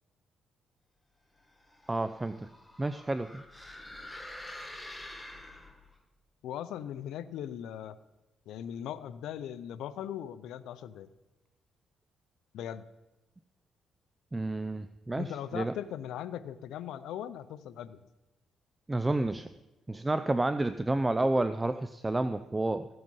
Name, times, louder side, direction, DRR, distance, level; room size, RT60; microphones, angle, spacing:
sound 1, 1.5-6.0, left 1 dB, 10° left, 1.5 m, -47 dB
voice 1, 1.9-2.5 2.8-3.4 14.3-15.7 18.9-19.5 19.9-22.9, right 2 dB, 15° right, 11 dB, 0.5 m, -30 dB
voice 2, 6.4-8.0 8.5-11.1 12.5-12.8 15.2-18.0, left 10 dB, 85° left, 14 dB, 0.6 m, -39 dB
15.0 x 7.8 x 5.5 m, 1.0 s
cardioid pair, 90°, 0 cm